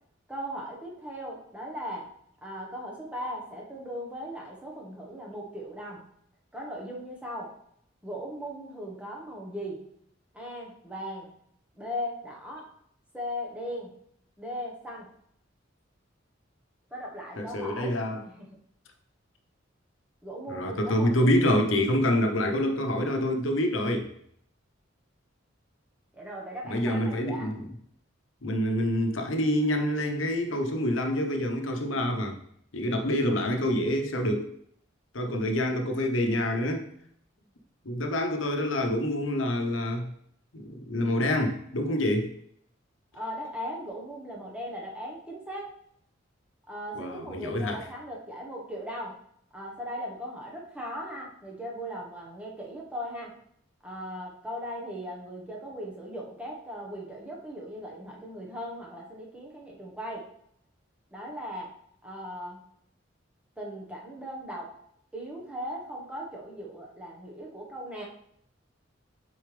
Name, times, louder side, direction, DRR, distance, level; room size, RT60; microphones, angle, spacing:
voice 1, 0.3-2.1 2.4-6.0 6.5-7.5 8.0-9.9 10.3-11.3 11.7-12.7 13.1-13.9 14.4-15.1 16.9-17.9 18.3-18.6 20.2-21.3 26.1-27.5 43.1-45.7 46.7-49.2 49.5-53.3 53.8-60.3 61.1-61.7 62.0-62.6 63.6-64.7 65.1-68.0, equal, 5° right, -3 dB, 1.2 m, -38 dB
voice 2, 17.4-18.3 20.5-24.1 26.7-27.7 28.4-32.3 32.7-34.5 35.1-36.8 37.8-40.1 40.5-42.3 46.9-47.8, left 1 dB, 90° left, 4 dB, 0.9 m, -27 dB
6.6 x 4.4 x 3.3 m, 0.68 s
head